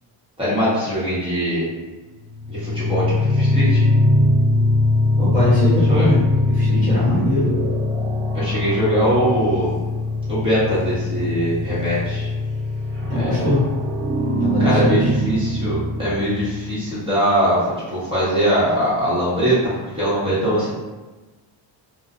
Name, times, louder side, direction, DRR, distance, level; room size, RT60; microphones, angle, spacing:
voice 1, 0.4-1.7 2.5-3.8 5.9-6.1 8.3-9.7 10.3-12.3 13.1-13.5 14.6-20.7, equal, 10° right, -10 dB, 1.1 m, -21 dB
sound 1, 2.2-16.9, left 2 dB, 25° right, 0.4 m, -21 dB
voice 2, 5.2-7.5 13.1-13.6 14.4-15.0, left 1 dB, 15° left, -8 dB, 1.2 m, -21 dB
2.4 x 2.2 x 2.5 m, 1.2 s
cardioid pair, 140°, 49 cm